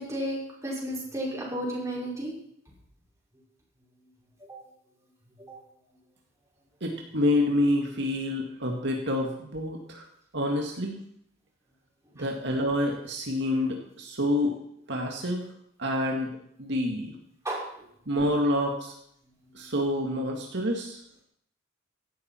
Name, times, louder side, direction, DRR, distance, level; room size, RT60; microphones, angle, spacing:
voice 1, 0.0-2.4 4.5-4.6 5.4-5.6 17.4-17.6, right 1 dB, 15° right, -5 dB, 5.6 m, -33 dB
voice 2, 6.8-10.1 10.3-10.9 12.2-14.6 14.9-15.4 15.8-17.1 18.1-18.9 19.5-21.0, left 1 dB, 65° right, 1 dB, 2.0 m, -27 dB
17.0 x 12.5 x 4.5 m, 0.72 s
head